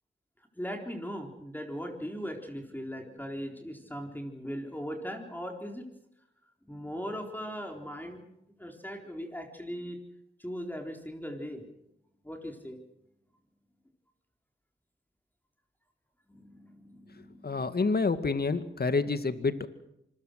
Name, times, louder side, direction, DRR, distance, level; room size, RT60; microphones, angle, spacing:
voice 1, 0.6-5.8 6.7-8.3 8.6-10.0 10.4-11.6 12.2-12.8 16.3-17.7, equal, 10° left, 2 dB, 4.0 m, -39 dB
voice 2, 17.4-19.7, left 4 dB, 50° left, 11 dB, 2.0 m, -28 dB
25.5 x 21.0 x 6.5 m, 0.81 s
cardioid pair, 45°, 21 cm